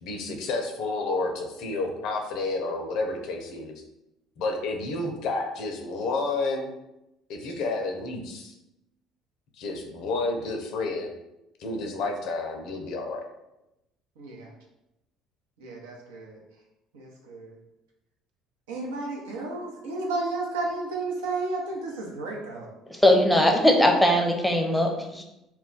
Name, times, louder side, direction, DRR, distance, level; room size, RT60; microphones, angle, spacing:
voice 1, 0.0-3.8 4.4-6.7 7.3-8.5 9.6-11.1 11.6-13.2, left 3 dB, 65° left, 3 dB, 0.5 m, -30 dB
voice 2, 14.2-14.5 15.6-16.4 16.9-17.6 18.7-22.7, right 3 dB, 80° right, -1 dB, 0.6 m, -32 dB
voice 3, 23.0-25.2, left 1 dB, 5° left, 2 dB, 0.6 m, -20 dB
2.2 x 2.2 x 3.8 m, 0.90 s
hypercardioid pair, 65°, 0 cm